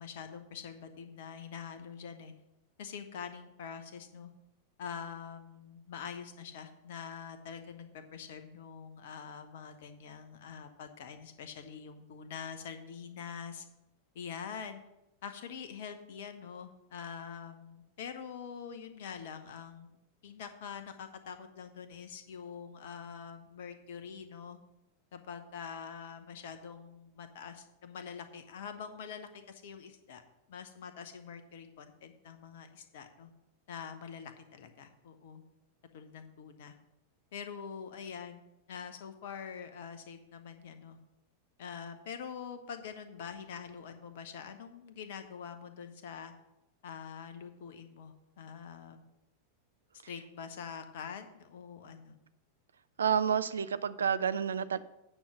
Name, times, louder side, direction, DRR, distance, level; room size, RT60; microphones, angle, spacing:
voice 1, 0.0-2.3 2.8-4.3 4.8-13.6 14.1-14.8 15.2-20.0 20.2-24.6 25.1-30.2 30.5-33.3 33.7-35.4 35.9-36.7 37.3-38.4 38.7-41.0 41.6-46.3 46.8-49.0 50.1-52.1, left 7 dB, 55° left, 8 dB, 0.9 m, -45 dB
voice 2, 53.0-54.8, right 7 dB, 70° right, 14 dB, 0.4 m, -29 dB
8.9 x 5.5 x 6.2 m, 0.91 s
figure-of-eight pair, 90°, 0 cm